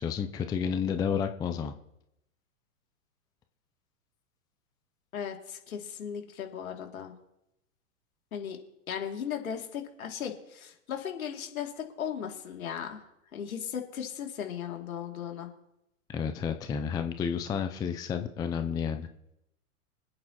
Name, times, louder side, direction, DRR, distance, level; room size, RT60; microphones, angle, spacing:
voice 1, 0.0-1.7 16.1-19.1, left 7 dB, 10° left, 8 dB, 0.5 m, -31 dB
voice 2, 5.1-7.1 8.3-8.6 8.9-13.0 13.3-15.5, left 8 dB, 70° left, 2 dB, 2.7 m, -37 dB
26.0 x 8.7 x 3.0 m, 0.85 s
hypercardioid pair, 110°, 44 cm